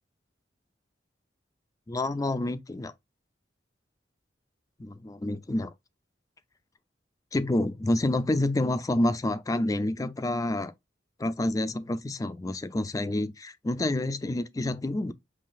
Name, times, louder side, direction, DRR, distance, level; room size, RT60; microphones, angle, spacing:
voice 1, 1.9-2.9 4.8-5.7 7.3-10.7 11.2-15.1, left 1 dB, 20° left, 0.4 m, -28 dB
5.6 x 2.8 x 2.4 m
head